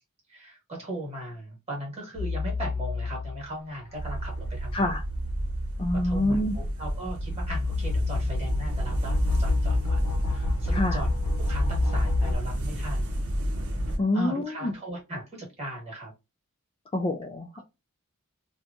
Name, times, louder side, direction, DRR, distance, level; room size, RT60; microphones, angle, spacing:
voice 1, 0.3-4.8 5.9-11.1 11.4-13.2 14.1-16.1 17.5-17.6, right 1 dB, 30° right, 1.3 m, -38 dB
sound 1, 2.2-3.5 4.1-12.3, left 3 dB, 85° left, 0.5 m, -29 dB
sound 2, 3.9-14.0, right 1 dB, 65° right, 0.8 m, -31 dB
voice 2, 4.7-5.0 5.8-6.6 10.7-11.0 14.0-14.7 16.9-17.6, left 1 dB, 25° left, 0.3 m, -26 dB
2.9 x 2.2 x 2.4 m
head